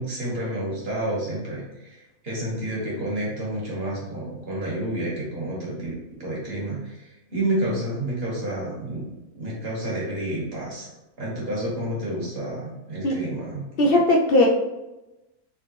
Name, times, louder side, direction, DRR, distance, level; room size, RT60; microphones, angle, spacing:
voice 1, 0.0-9.1 9.3-10.9 11.2-13.6, right 1 dB, 45° right, -5 dB, 1.7 m, -30 dB
voice 2, 13.8-14.5, left 1 dB, 65° left, -1 dB, 0.6 m, -18 dB
3.8 x 3.3 x 3.1 m, 1.0 s
omnidirectional pair, 1.5 m